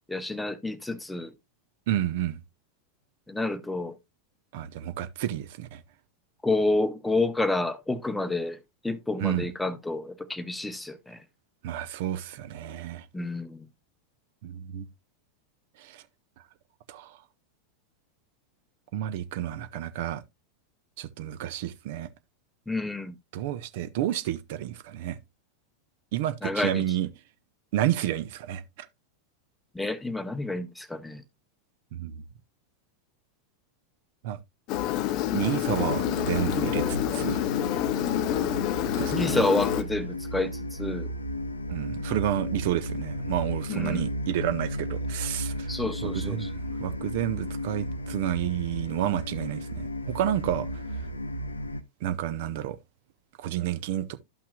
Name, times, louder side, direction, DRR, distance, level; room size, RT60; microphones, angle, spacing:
voice 1, 0.1-1.3 3.3-3.9 6.4-8.6 8.8-11.2 13.1-13.7 22.7-23.2 26.4-26.8 29.7-31.2 39.1-41.1 43.7-44.1 45.7-46.5, left 2 dB, 5° left, 0.8 m, -29 dB
voice 2, 1.9-2.4 4.5-5.8 9.2-9.5 11.6-13.0 14.4-14.9 15.8-16.0 16.9-17.1 18.9-20.2 21.0-22.1 23.3-25.2 26.1-27.1 27.7-28.6 31.9-32.2 34.2-34.4 35.3-37.4 39.0-39.5 41.7-45.7 46.0-50.7 52.0-52.8 53.4-54.2, right 12 dB, 50° right, 0.7 m, -30 dB
Engine, 34.7-39.8, left 12 dB, 40° left, 0.6 m, -28 dB
sound 1, 35.9-51.8, equal, 80° left, 0.6 m, -34 dB
13.0 x 5.7 x 2.2 m
figure-of-eight pair, 90°, 0 cm